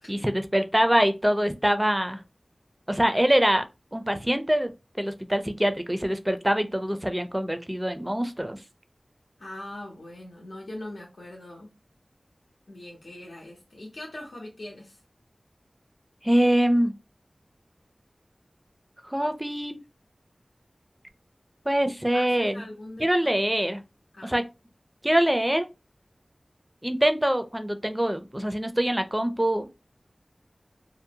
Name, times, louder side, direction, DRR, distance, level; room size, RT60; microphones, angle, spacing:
voice 1, 0.1-2.2 2.9-3.6 3.9-4.7 5.0-8.6 16.2-16.9 19.0-19.8 21.7-22.5 23.0-23.8 24.2-24.4 25.0-25.7 26.8-29.7, equal, 15° right, 0.4 m, -24 dB
voice 2, 9.4-11.7 12.7-15.0 22.1-23.3 24.1-24.4, left 1 dB, 85° left, 0.7 m, -41 dB
2.6 x 2.0 x 2.7 m
wide cardioid pair, 50°, 0 cm